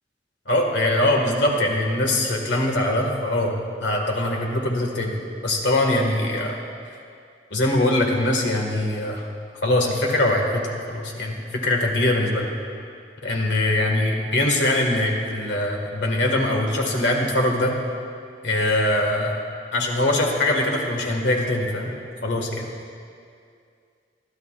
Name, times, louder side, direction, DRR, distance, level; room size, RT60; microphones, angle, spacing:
voice 1, 0.5-6.6 7.5-9.2 9.6-12.5 13.2-17.8 18.4-19.4 19.7-21.9 22.2-22.7, left 1 dB, 85° left, 0 dB, 1.9 m, -22 dB
20.5 x 12.5 x 2.5 m, 2.3 s
head